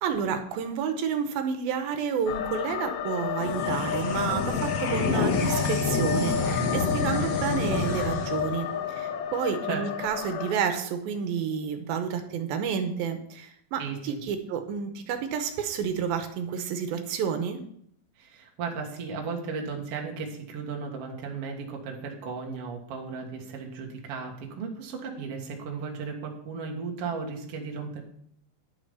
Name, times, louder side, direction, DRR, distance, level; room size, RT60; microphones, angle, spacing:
voice 1, 0.0-17.6, right 7 dB, 80° right, 7 dB, 2.8 m, -30 dB
sound 1, 2.3-10.5, left 8 dB, 85° left, 1.6 m, -32 dB
sound 2, 3.4-10.1, left 4 dB, 55° left, 2.0 m, -29 dB
voice 2, 13.8-14.2 18.2-28.0, right 5 dB, 50° right, 1 dB, 2.2 m, -35 dB
11.0 x 6.9 x 5.5 m, 0.67 s
omnidirectional pair, 4.2 m